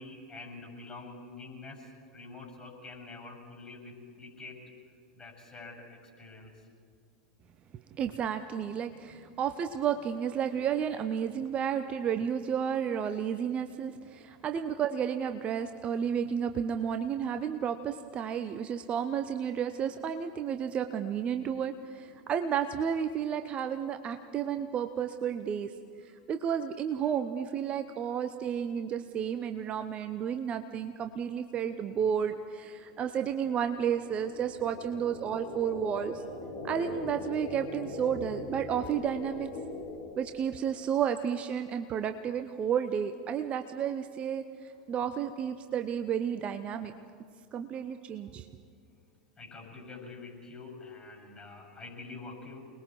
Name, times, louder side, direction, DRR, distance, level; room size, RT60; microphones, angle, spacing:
voice 1, 0.0-4.6 5.1-6.7 14.1-14.3 27.0-27.1 49.4-52.7, left 3 dB, 20° left, 0 dB, 7.4 m, -46 dB
voice 2, 8.0-25.7 26.3-36.2 36.6-39.5 40.2-44.4 44.9-46.9 47.5-48.5, right 8 dB, 30° right, 8 dB, 0.8 m, -32 dB
sound 1, 32.1-40.9, left 2 dB, 55° left, 7.4 m, -41 dB
28.5 x 20.5 x 4.7 m, 2.2 s
figure-of-eight pair, 85°, 4 cm